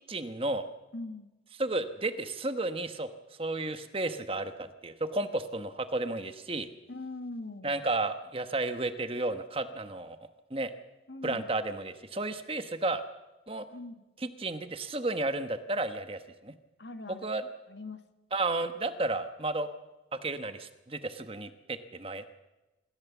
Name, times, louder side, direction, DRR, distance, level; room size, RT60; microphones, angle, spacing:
voice 1, 0.1-0.7 1.6-3.1 3.4-6.7 7.6-10.2 10.5-10.7 11.2-13.0 13.5-13.6 14.2-16.5 17.1-17.4 18.3-19.7 20.2-22.3, right 2 dB, 30° right, 9 dB, 1.1 m, -32 dB
voice 2, 0.9-1.3 6.9-7.7 11.1-11.5 13.7-14.0 16.8-17.3 17.7-18.0, left 2 dB, 65° left, 8 dB, 1.7 m, -41 dB
26.0 x 15.0 x 7.2 m, 1.1 s
head